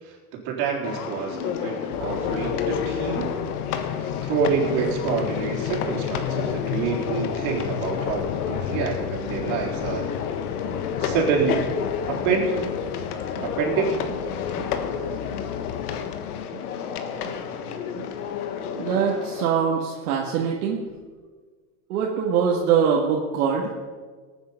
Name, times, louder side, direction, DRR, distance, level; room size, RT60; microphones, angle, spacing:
voice 1, 0.0-3.3 3.9-10.1 11.0-11.7 12.1-12.5 13.4-13.9, right 6 dB, 55° right, -2 dB, 4.1 m, -27 dB
sound 1, 0.8-19.5, left 7 dB, 85° left, 1.5 m, -30 dB
sound 2, 1.9-16.5, left 13 dB, 50° left, 0.5 m, -34 dB
sound 3, 10.7-18.4, right 6 dB, 15° right, 4.0 m, -46 dB
voice 2, 18.8-20.8 21.9-23.7, right 7 dB, 75° right, -1 dB, 1.9 m, -23 dB
19.0 x 9.2 x 5.7 m, 1.5 s
supercardioid pair, 155°, 44 cm